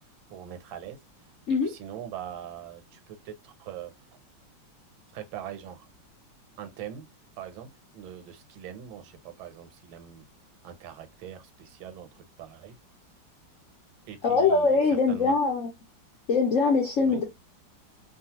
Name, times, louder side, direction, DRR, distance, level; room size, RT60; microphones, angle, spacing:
voice 1, 0.3-1.0 1.5-3.9 5.1-5.9 6.6-10.2 10.6-12.8 14.1-14.8 15.1-15.3 17.0-17.2, right 10 dB, 85° right, 1.4 m, -42 dB
voice 2, 14.2-15.7 16.3-17.3, left 4 dB, 60° left, 0.8 m, -23 dB
3.0 x 2.3 x 2.8 m
omnidirectional pair, 2.1 m